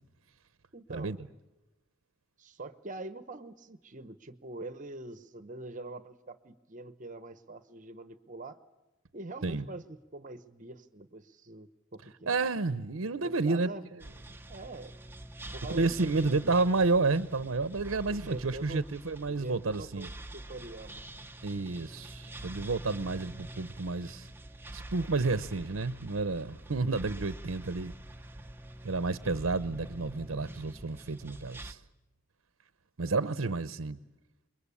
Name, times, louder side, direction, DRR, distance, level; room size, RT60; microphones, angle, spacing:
voice 1, 0.7-1.1 2.4-8.6 9.1-12.4 13.2-13.8 14.1-14.9 15.5-16.8 18.1-18.8 19.3-21.0 33.0-33.6, right 2 dB, 40° right, 1.0 m, -44 dB
voice 2, 12.3-13.7 15.7-20.1 21.4-24.3 24.7-27.9 28.8-31.8 33.0-34.0, right 3 dB, 75° right, 0.8 m, -30 dB
sound 1, 14.0-31.7, right 1 dB, 10° right, 0.9 m, -46 dB
28.0 x 22.5 x 8.4 m
head